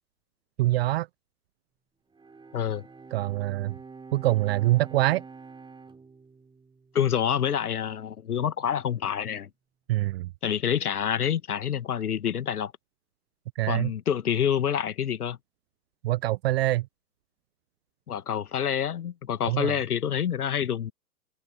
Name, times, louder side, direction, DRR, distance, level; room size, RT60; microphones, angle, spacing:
voice 1, 0.6-1.1 3.1-3.7 4.1-5.2 9.9-10.3 13.6-13.9 16.0-16.9 19.5-19.7, right 16 dB, 40° right, 0.7 m, -24 dB
Bowed string instrument, 2.1-7.6, right 4 dB, 10° right, 6.3 m, -47 dB
voice 2, 2.5-2.8 6.9-9.5 10.4-12.7 13.7-15.4 18.1-20.9, left 8 dB, 70° left, 1.5 m, -27 dB
figure-of-eight pair, 105°, 47 cm